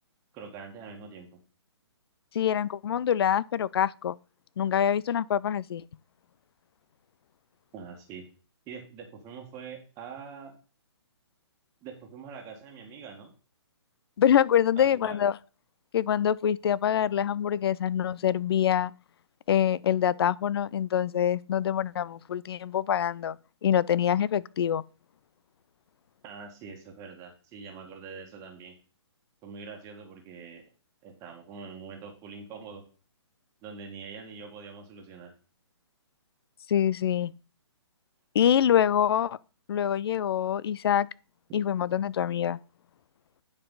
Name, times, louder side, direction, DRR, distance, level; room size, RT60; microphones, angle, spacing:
voice 1, 0.3-1.4 7.7-8.2 8.7-10.5 11.8-13.3 14.8-15.2 26.2-28.7 29.4-30.6 31.0-32.8 33.6-35.3, right 5 dB, 20° right, 1.5 m, -44 dB
voice 2, 2.3-4.2 4.6-5.8 14.2-15.4 15.9-18.9 19.5-23.4 23.6-24.8 36.7-37.3 38.3-39.4 39.7-41.1 41.5-42.6, left 9 dB, 60° left, 0.4 m, -25 dB
9.7 x 4.8 x 3.9 m
hypercardioid pair, 140°, 15 cm